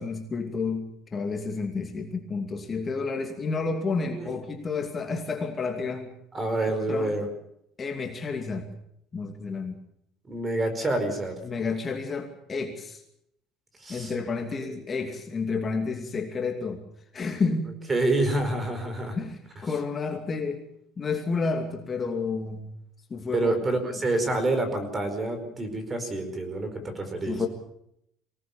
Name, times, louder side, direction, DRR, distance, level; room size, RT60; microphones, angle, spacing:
voice 1, 0.0-6.1 6.7-7.2 7.8-8.7 9.1-9.8 11.4-13.0 13.9-16.8 17.1-17.8 19.2-20.6 21.0-22.7 23.1-23.5 27.2-27.5, left 4 dB, 25° left, 3 dB, 2.6 m, -30 dB
voice 2, 6.3-7.3 10.3-11.4 13.8-14.1 14.6-14.8 17.9-19.2 23.3-27.4, right 2 dB, 20° right, 8 dB, 4.9 m, -27 dB
24.5 x 18.5 x 7.2 m, 0.73 s
cardioid pair, 145°, 0 cm